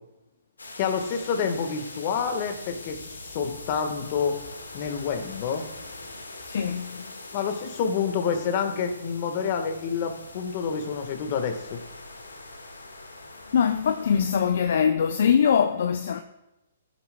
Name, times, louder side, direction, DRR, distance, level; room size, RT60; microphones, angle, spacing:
sound 1, 0.6-14.5, left 2 dB, 85° left, 1.6 m, -43 dB
voice 1, 0.8-4.4 4.7-5.6 7.3-11.8, left 6 dB, 40° left, 1.3 m, -28 dB
voice 2, 6.5-7.0 13.5-16.2, left 7 dB, 60° left, 0.5 m, -22 dB
16.0 x 8.5 x 2.2 m
figure-of-eight pair, 125°, 0 cm